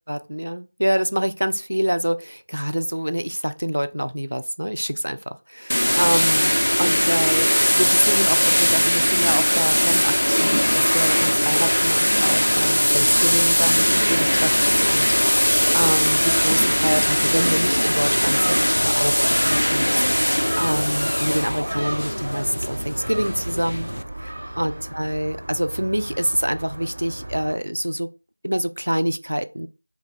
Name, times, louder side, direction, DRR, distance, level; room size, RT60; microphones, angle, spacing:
voice 1, 0.1-23.9 24.2-28.1 28.4-29.7, equal, 70° right, 0.3 m, -26 dB
sound 1, 5.7-24.0, equal, 80° left, 0.3 m, -20 dB
Gull seagull, 12.9-27.5, right 1 dB, 20° right, 0.5 m, -35 dB
2.6 x 2.3 x 3.8 m
figure-of-eight pair, 175°, 0 cm